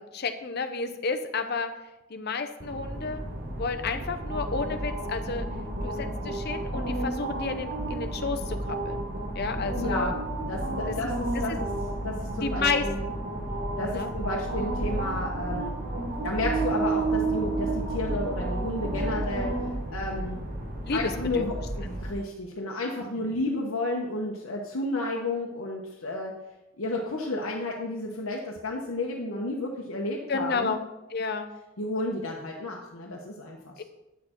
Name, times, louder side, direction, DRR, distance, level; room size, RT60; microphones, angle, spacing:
voice 1, 0.1-1.7 2.1-3.2 3.6-5.5 5.8-9.1 9.3-10.1 10.9-11.2 12.4-12.8 13.2-13.3 13.8-14.1 20.9-21.5 23.2-23.3 30.3-30.8 31.1-31.5 33.8-33.9, left 4 dB, 50° left, 7 dB, 0.7 m, -31 dB
sound 1, 2.6-22.1, right 2 dB, 40° right, 1.3 m, -31 dB
voice 2, 9.5-10.1 10.5-11.5 12.0-13.0 13.8-15.7 16.2-20.4 20.9-26.3 26.8-30.7 31.8-33.8, left 2 dB, 70° left, -1 dB, 1.0 m, -32 dB
9.2 x 6.7 x 4.4 m, 0.98 s
head